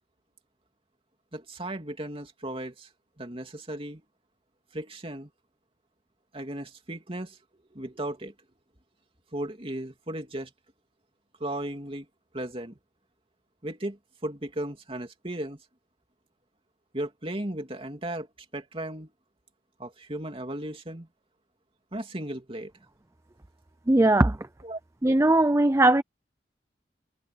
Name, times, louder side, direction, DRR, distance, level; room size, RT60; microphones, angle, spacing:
voice 1, 1.3-2.9 3.2-4.0 4.7-5.3 6.3-7.4 7.7-8.3 9.3-10.5 11.4-12.1 12.3-12.8 13.6-15.6 16.9-18.3 18.5-19.1 19.8-21.1 21.9-22.7 24.6-24.8, right 1 dB, 30° right, 3.0 m, -35 dB
voice 2, 23.9-24.4 25.0-26.0, right 2 dB, 15° right, 0.5 m, -19 dB
head